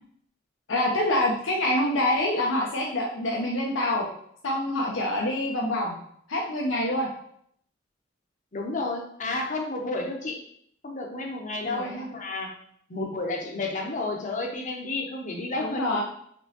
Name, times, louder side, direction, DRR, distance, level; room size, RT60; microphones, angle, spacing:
voice 1, 0.7-4.1 4.4-6.0 6.3-7.1 11.6-12.1 12.9-13.1 15.6-16.0, left 1 dB, 90° left, -2 dB, 0.7 m, -26 dB
voice 2, 8.5-10.4 10.8-12.5 12.9-16.0, left 2 dB, 40° left, 1 dB, 0.7 m, -31 dB
4.5 x 3.0 x 2.8 m, 0.66 s
head